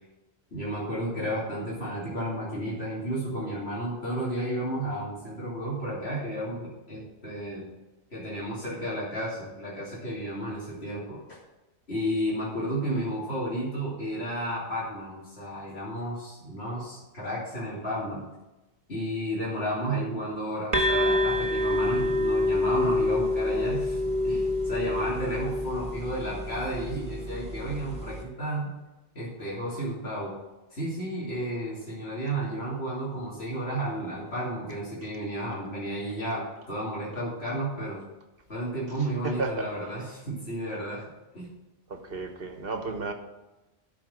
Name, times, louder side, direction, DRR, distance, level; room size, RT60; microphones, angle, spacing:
voice 1, 0.5-7.7 8.1-11.4 11.9-18.2 18.9-28.7 29.1-30.3 30.7-38.0 38.5-41.0 41.3-41.5, right 1 dB, 70° left, -7 dB, 3.0 m, -32 dB
sound 1, 20.7-28.2, left 1 dB, 30° right, 1.5 m, -27 dB
voice 2, 39.2-39.7 41.9-43.1, right 3 dB, 60° right, 5 dB, 1.4 m, -32 dB
12.5 x 5.1 x 6.3 m, 1.0 s
omnidirectional pair, 1.1 m